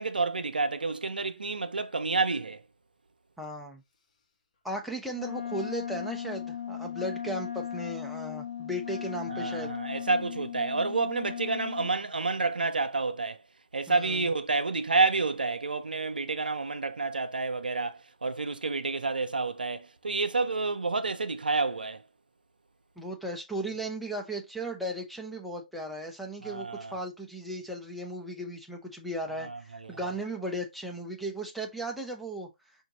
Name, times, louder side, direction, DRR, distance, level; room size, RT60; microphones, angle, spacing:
voice 1, 0.0-2.6 9.3-13.4 13.7-22.0 26.4-27.0 29.4-30.0, right 3 dB, 85° right, 0.5 m, -29 dB
voice 2, 3.4-3.8 4.6-9.7 13.9-14.3 23.0-32.5, right 1 dB, ahead, 0.8 m, -36 dB
Wind instrument woodwind instrument, 5.1-11.9, left 8 dB, 50° left, 1.1 m, -37 dB
4.9 x 2.7 x 2.9 m
figure-of-eight pair, 135°, 5 cm